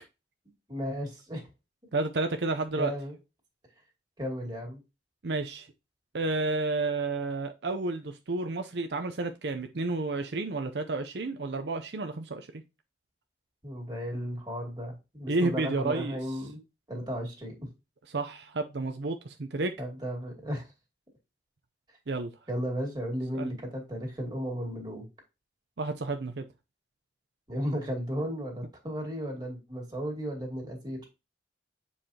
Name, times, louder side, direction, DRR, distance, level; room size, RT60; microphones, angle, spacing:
voice 1, 0.7-1.4 2.8-3.1 4.2-4.8 13.6-16.6 16.9-17.7 19.8-20.6 22.5-25.1 27.5-31.0, equal, 25° right, 2.4 m, -34 dB
voice 2, 1.9-2.9 5.2-5.7 6.1-12.5 15.3-16.2 18.1-19.7 22.1-22.3 23.3-23.6 25.8-26.4, right 3 dB, 75° right, 0.6 m, -31 dB
7.6 x 4.8 x 2.8 m
head